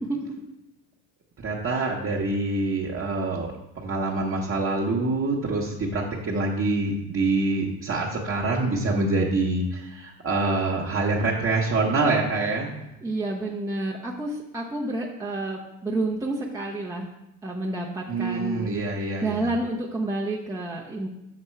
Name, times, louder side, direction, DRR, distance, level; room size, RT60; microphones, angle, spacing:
voice 1, 1.4-12.7 18.1-19.5, right 2 dB, 30° right, -3 dB, 1.0 m, -25 dB
voice 2, 13.0-17.1 17.4-18.7 19.2-21.1, right 2 dB, 5° right, -4 dB, 0.6 m, -29 dB
6.8 x 3.5 x 4.4 m, 0.92 s
supercardioid pair, 90°, 44 cm